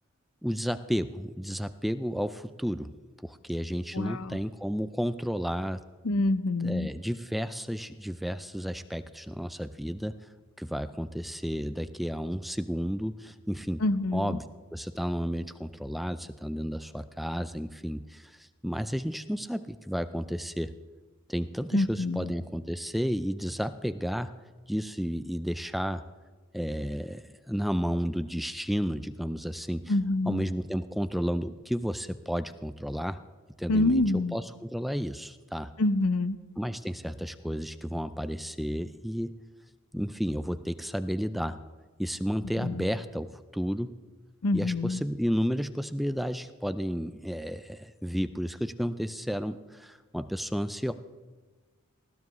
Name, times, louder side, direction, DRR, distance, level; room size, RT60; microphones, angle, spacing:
voice 1, 0.4-2.9 3.2-5.8 6.6-10.2 10.6-13.8 14.1-14.4 14.7-20.7 21.3-24.3 24.7-26.0 26.5-29.9 30.3-33.2 33.6-34.0 34.3-35.7 36.6-39.4 39.9-41.6 42.0-44.0 44.5-50.9, equal, ahead, 11 dB, 0.4 m, -32 dB
voice 2, 3.9-4.4 6.0-6.9 13.8-14.4 21.7-22.3 29.9-30.4 33.7-34.3 35.8-36.4 42.6-42.9 44.4-45.0, left 2 dB, 85° left, 12 dB, 0.7 m, -26 dB
20.0 x 14.0 x 3.1 m, 1.3 s
head